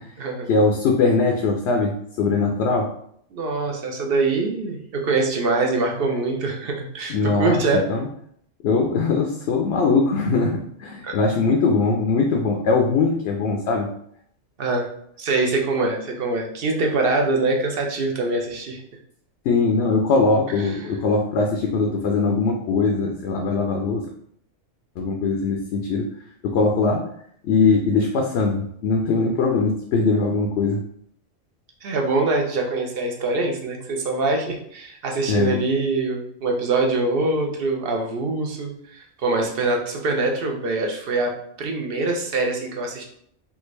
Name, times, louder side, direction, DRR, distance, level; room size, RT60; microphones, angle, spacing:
voice 1, 0.5-1.9 2.2-2.9 7.1-7.6 7.9-8.1 8.6-13.9 19.4-24.0 25.0-26.0 26.4-27.0 27.4-30.8 35.3-35.5, left 4 dB, 65° left, 1 dB, 0.7 m, -21 dB
voice 2, 3.3-7.9 11.0-11.1 14.6-14.9 15.2-18.8 20.6-20.7 31.8-43.0, right 3 dB, 55° right, 2 dB, 0.7 m, -24 dB
3.4 x 2.5 x 3.1 m, 0.66 s
omnidirectional pair, 1.3 m